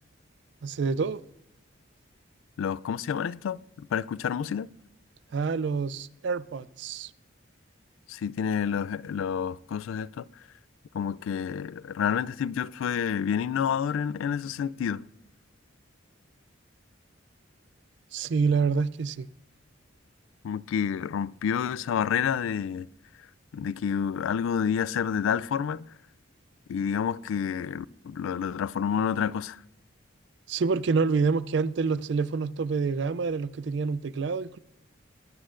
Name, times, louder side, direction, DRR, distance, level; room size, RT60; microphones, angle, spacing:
voice 1, 0.6-1.2 5.3-7.1 18.1-19.3 30.5-34.6, right 4 dB, 60° right, 0.4 m, -27 dB
voice 2, 2.6-4.7 8.1-10.3 10.9-15.0 20.4-22.9 23.5-25.9 26.7-29.6, left 7 dB, 80° left, 0.3 m, -29 dB
21.5 x 8.5 x 2.5 m
head